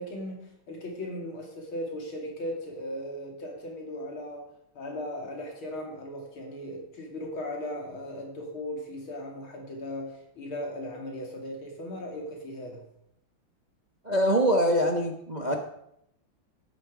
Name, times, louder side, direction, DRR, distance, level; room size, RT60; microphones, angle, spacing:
voice 1, 0.0-12.9, left 1 dB, 85° left, 0 dB, 3.4 m, -37 dB
voice 2, 14.0-15.6, equal, 30° right, 3 dB, 0.8 m, -24 dB
12.0 x 9.6 x 5.0 m, 0.74 s
omnidirectional pair, 2.2 m